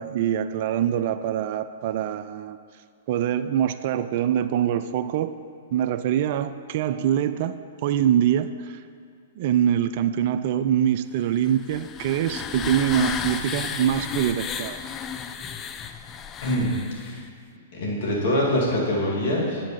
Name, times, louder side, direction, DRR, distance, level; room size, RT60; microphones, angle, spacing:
voice 1, 0.0-2.6 3.1-5.4 5.7-7.6 7.8-8.8 9.4-14.8, right 10 dB, 50° right, 12 dB, 0.3 m, -24 dB
sound 1, 11.4-17.3, left 7 dB, 25° left, 0.4 m, -33 dB
voice 2, 16.4-16.7 17.0-17.2 17.7-19.6, left 1 dB, 60° left, -3 dB, 2.3 m, -24 dB
8.9 x 5.8 x 5.2 m, 2.2 s
figure-of-eight pair, 110°, 0 cm